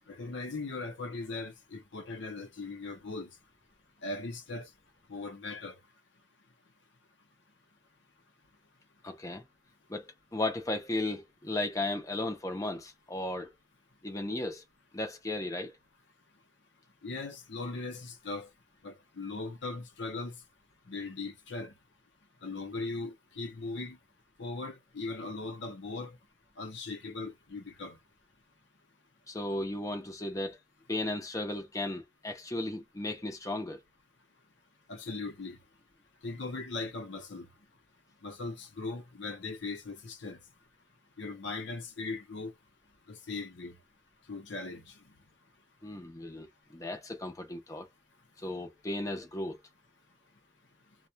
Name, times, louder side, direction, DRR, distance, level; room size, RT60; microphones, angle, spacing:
voice 1, 0.1-3.3 4.0-4.7 5.1-5.8 17.0-18.5 18.8-20.4 20.9-21.7 22.4-24.0 24.4-26.2 26.6-28.0 34.9-35.6 36.2-37.5 38.2-40.4 41.2-42.5 43.1-43.8 44.3-44.9, left 3 dB, 65° left, 0.7 m, -39 dB
voice 2, 9.0-9.4 9.9-13.5 14.0-14.6 14.9-15.8 29.3-30.6 30.9-33.8 45.8-47.9 48.4-49.6, left 2 dB, 15° left, 0.6 m, -35 dB
2.3 x 2.1 x 2.7 m
head